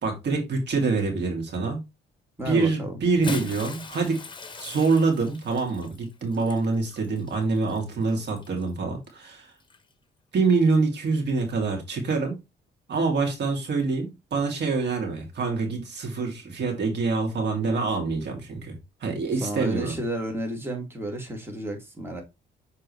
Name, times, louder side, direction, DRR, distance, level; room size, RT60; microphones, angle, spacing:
voice 1, 0.0-1.8 2.4-4.2 4.6-9.5 10.3-12.4 12.9-18.7 19.0-20.0, right 4 dB, 60° right, 2.8 m, -25 dB
voice 2, 2.4-3.0 19.3-22.2, right 1 dB, 10° right, 2.6 m, -32 dB
Bathtub (filling or washing) / Splash splatter, 3.0-8.7 9.6-9.8 11.2-11.3, left 3 dB, 25° left, 1.2 m, -39 dB
7.0 x 4.4 x 3.2 m
cardioid pair, 90°, 20 cm